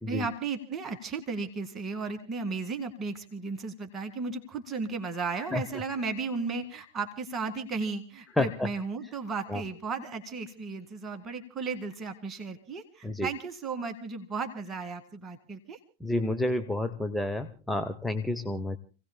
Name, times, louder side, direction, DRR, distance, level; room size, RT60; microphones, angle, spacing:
voice 1, 0.1-15.8, right 4 dB, 20° right, 5 dB, 2.1 m, -35 dB
voice 2, 16.0-18.8, left 1 dB, 5° left, 6 dB, 0.9 m, -29 dB
29.5 x 17.5 x 2.2 m, 0.35 s
figure-of-eight pair, 90°, 0 cm